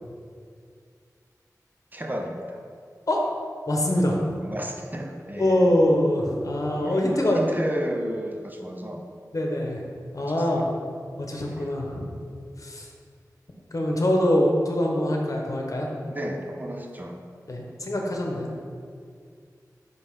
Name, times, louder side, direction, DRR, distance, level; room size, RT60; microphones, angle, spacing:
voice 1, 1.9-2.6 4.4-5.7 6.7-9.0 10.2-10.7 11.3-11.7 16.0-17.2, equal, 25° right, 2 dB, 0.7 m, -33 dB
voice 2, 3.7-4.2 5.4-7.4 9.3-9.8 10.1-10.7 11.2-12.1 12.6-12.9 13.7-15.9 17.5-18.5, left 1 dB, 55° left, 0 dB, 1.0 m, -24 dB
5.3 x 4.1 x 5.4 m, 2.2 s
wide cardioid pair, 70°, 7 cm